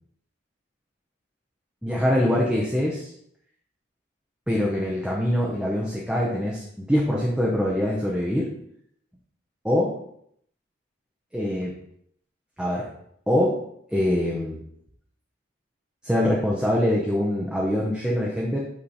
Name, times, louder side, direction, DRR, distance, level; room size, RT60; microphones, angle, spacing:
voice 1, 1.8-3.1 4.5-8.5 9.6-9.9 11.3-11.7 12.6-12.9 13.3-13.6 13.9-14.6 16.0-18.6, left 1 dB, 5° right, -4 dB, 0.8 m, -24 dB
8.7 x 3.2 x 4.1 m, 0.70 s
head